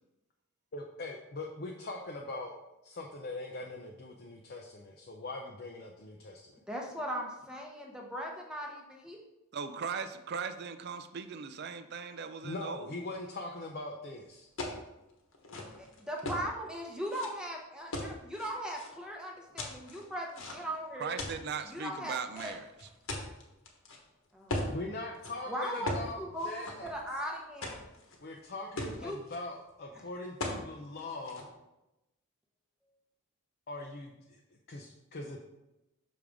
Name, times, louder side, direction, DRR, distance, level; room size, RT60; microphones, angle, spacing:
voice 1, 0.7-2.5 2.8-6.6 12.4-14.5 24.7-26.9 28.2-31.5 33.7-35.4, left 2 dB, 45° left, 1 dB, 0.5 m, -41 dB
voice 2, 6.7-9.2 15.8-21.2 21.7-22.5 24.3-24.7 25.5-25.9 26.2-27.7 29.0-29.2, equal, 5° right, -1 dB, 0.8 m, -39 dB
voice 3, 9.5-12.9 21.0-22.7, right 6 dB, 50° right, 10 dB, 0.4 m, -38 dB
sound 1, 14.6-14.8 15.3-16.5 17.1-17.3 17.9-18.9 19.6-20.8 21.2-21.6 22.3-24.0 24.5-24.8 25.1-25.3 25.9-26.1 26.4-27.2 27.6-28.2 28.5-28.6 28.8-29.4 30.4-30.6 31.0-31.4, left 1 dB, 70° left, 1.2 m, -38 dB
6.3 x 5.0 x 3.5 m, 0.94 s
head